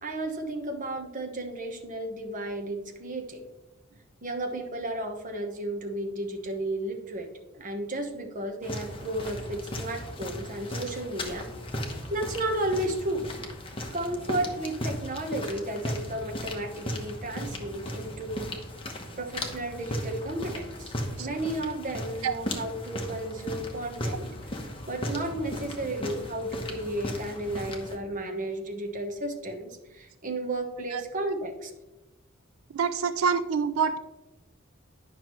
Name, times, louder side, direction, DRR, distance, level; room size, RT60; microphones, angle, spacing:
voice 1, 0.0-3.5 4.2-7.3 7.5-11.5 12.1-13.3 13.9-18.5 19.2-20.9 21.2-24.3 24.9-31.7, right 1 dB, 40° right, 3 dB, 1.0 m, -33 dB
sound 1, 8.6-28.0, left 1 dB, 25° left, 1.0 m, -36 dB
voice 2, 32.7-34.0, right 6 dB, 85° right, 12 dB, 0.4 m, -26 dB
9.9 x 5.9 x 3.1 m, 1.0 s
head